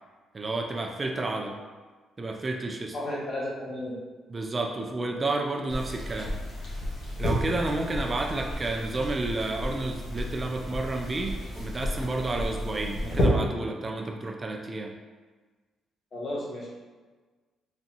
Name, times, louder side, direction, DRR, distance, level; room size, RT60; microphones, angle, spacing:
voice 1, 0.3-1.6 2.2-2.9 4.3-6.4 7.2-14.9, right 2 dB, 30° right, 2 dB, 0.4 m, -31 dB
voice 2, 2.9-4.0 16.1-16.7, left 1 dB, 50° left, -5 dB, 1.3 m, -33 dB
sound 1, 5.7-13.3, left 1 dB, 65° left, 1.4 m, -32 dB
4.1 x 3.4 x 2.8 m, 1.3 s
cardioid pair, 90°, 0 cm